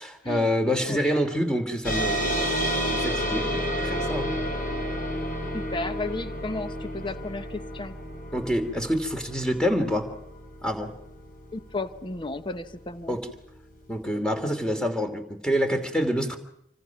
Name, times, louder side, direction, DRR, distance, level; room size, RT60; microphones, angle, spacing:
voice 1, 0.2-2.6 2.8-4.4 8.3-10.1 10.6-10.9 13.1-13.3 13.9-16.4, equal, 5° left, 6 dB, 2.8 m, -27 dB
sound 1, 1.8-12.8, equal, 50° left, 4.6 m, -31 dB
voice 2, 5.5-7.9 11.5-13.2, left 2 dB, 25° left, 10 dB, 1.0 m, -34 dB
27.0 x 25.5 x 6.0 m, 0.77 s
head